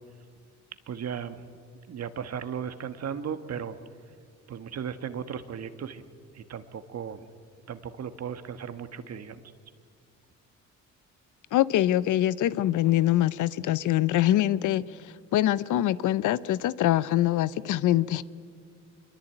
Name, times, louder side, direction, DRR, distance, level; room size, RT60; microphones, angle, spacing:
voice 1, 0.9-1.4 1.9-3.8 4.5-6.0 6.3-7.2 7.7-9.4, right 7 dB, 55° right, 1.7 m, -36 dB
voice 2, 11.5-14.8 15.3-18.2, left 13 dB, 80° left, 0.8 m, -24 dB
24.5 x 22.5 x 9.0 m
cardioid pair, 90°, 30 cm